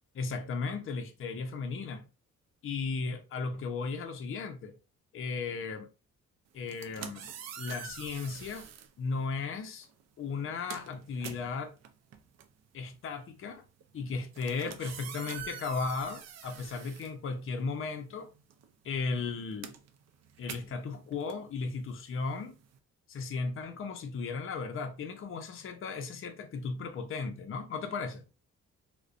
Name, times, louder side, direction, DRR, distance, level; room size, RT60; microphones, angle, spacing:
voice 1, 0.1-2.0 2.6-4.8 5.1-5.9 6.5-7.3 7.6-8.7 9.0-9.9 10.2-11.8 12.7-13.6 13.9-18.3 18.8-19.7 20.4-22.6 23.1-28.2, left 4 dB, 45° left, 0.5 m, -36 dB
sound 1, 6.6-8.9 9.8-10.0 10.3-17.8 18.1-22.8, right 8 dB, 55° right, 0.4 m, -46 dB
2.4 x 2.1 x 2.4 m
cardioid pair, 70°, 32 cm